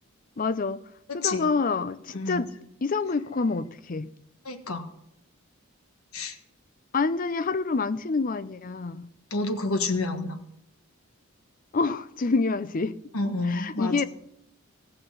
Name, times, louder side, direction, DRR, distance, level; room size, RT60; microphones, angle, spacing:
voice 1, 0.4-0.8 1.1-2.5 2.8-4.1 6.9-9.1 11.7-12.9 13.5-14.0, left 4 dB, 40° left, 0.5 m, -27 dB
voice 2, 1.1-1.5 2.1-2.5 4.4-4.8 6.1-6.4 9.3-10.4 13.1-14.1, left 3 dB, 90° left, 1.5 m, -29 dB
17.0 x 5.9 x 8.0 m
head